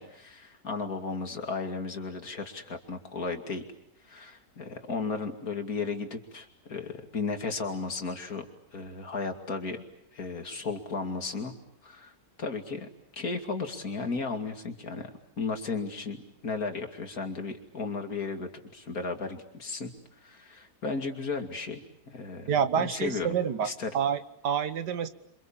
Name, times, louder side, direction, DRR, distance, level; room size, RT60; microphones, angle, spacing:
voice 1, 0.0-3.6 4.0-8.4 8.7-9.8 10.1-11.5 11.8-12.1 12.4-15.1 15.4-19.9 20.2-23.3 23.6-23.9, left 4 dB, 60° left, 5 dB, 2.9 m, -35 dB
voice 2, 22.5-23.7 23.9-25.1, right 8 dB, 90° right, 11 dB, 1.8 m, -28 dB
29.0 x 25.5 x 7.2 m, 0.75 s
omnidirectional pair, 1.7 m